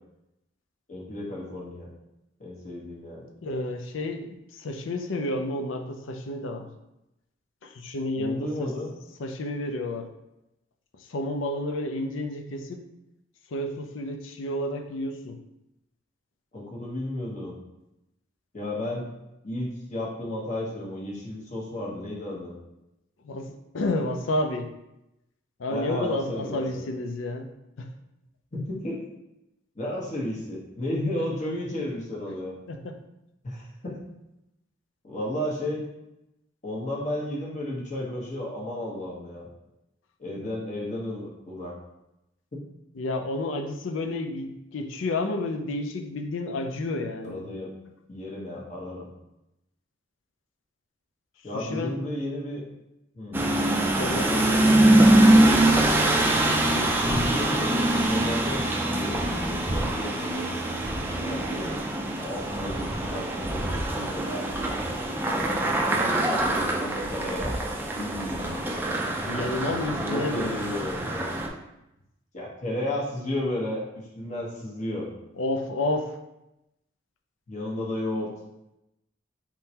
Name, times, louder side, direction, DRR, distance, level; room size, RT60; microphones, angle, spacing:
voice 1, 0.9-1.9 2.4-3.3 8.2-8.9 16.5-17.6 18.5-19.0 19.4-22.6 25.7-26.8 28.5-29.0 29.8-32.6 33.4-34.0 35.0-35.8 36.6-39.5 40.2-41.8 42.5-42.6 47.2-47.7 48.1-49.1 51.4-52.6 53.1-53.4 56.9-60.5 61.2-61.8 62.2-64.5 65.3-68.6 70.0-71.3 72.3-73.8 74.1-75.1 77.5-78.3, left 1 dB, 40° left, -4 dB, 1.1 m, -33 dB
voice 2, 3.4-6.7 7.6-8.7 9.2-10.1 10.9-12.8 13.5-15.4 23.2-24.7 25.6-27.5 27.8-27.9 32.7-33.0 43.0-47.5 51.5-52.0 54.0-55.2 69.3-70.6 75.4-76.1, left 2 dB, 75° left, 5 dB, 0.5 m, -30 dB
sound 1, 53.3-71.5, right 1 dB, 10° right, 0.4 m, -24 dB
4.3 x 3.6 x 2.8 m, 0.89 s
head